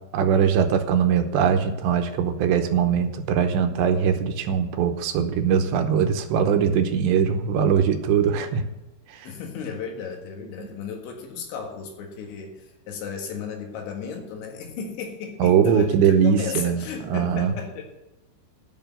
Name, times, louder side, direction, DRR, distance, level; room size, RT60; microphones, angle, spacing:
voice 1, 0.1-8.6 9.1-9.3 10.6-10.7 15.4-17.5, right 7 dB, 80° right, 7 dB, 3.0 m, -21 dB
voice 2, 9.2-17.8, left 6 dB, 80° left, 2 dB, 4.0 m, -35 dB
11.5 x 6.2 x 9.2 m, 0.98 s
omnidirectional pair, 5.2 m